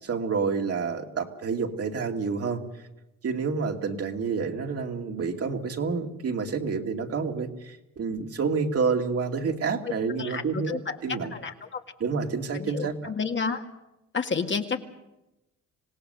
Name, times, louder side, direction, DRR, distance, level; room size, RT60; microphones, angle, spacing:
voice 1, 0.0-2.6 3.2-11.3 12.0-13.1, right 5 dB, 50° right, 3 dB, 2.4 m, -29 dB
voice 2, 10.2-11.0 11.3-11.8 12.5-13.6 14.1-14.8, left 5 dB, 40° left, 4 dB, 1.9 m, -30 dB
26.0 x 17.5 x 6.8 m, 0.95 s
cardioid pair, 90°, 30 cm